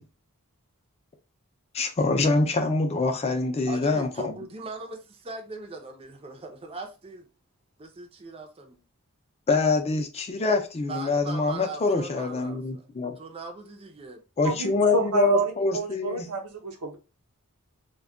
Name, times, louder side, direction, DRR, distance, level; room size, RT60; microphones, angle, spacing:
voice 1, 1.7-4.3 9.5-13.2 14.4-16.3, left 3 dB, 30° left, 0.5 m, -25 dB
voice 2, 3.7-7.3 7.8-8.8 10.9-12.9 13.2-14.2, right 3 dB, 25° right, 0.4 m, -40 dB
voice 3, 14.4-17.0, right 4 dB, 85° right, 0.7 m, -28 dB
2.2 x 2.1 x 3.6 m
head